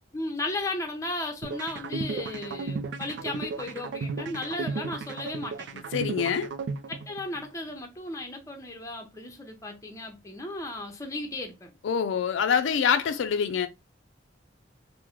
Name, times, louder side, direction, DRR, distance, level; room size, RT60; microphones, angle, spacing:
voice 1, 0.1-5.7 6.9-11.7, left 2 dB, 15° left, 0.6 m, -35 dB
sound 1, 1.4-7.4, right 4 dB, 65° right, 0.4 m, -34 dB
voice 2, 5.9-6.5 11.8-13.7, left 7 dB, 80° left, 0.4 m, -25 dB
3.6 x 2.1 x 2.9 m
head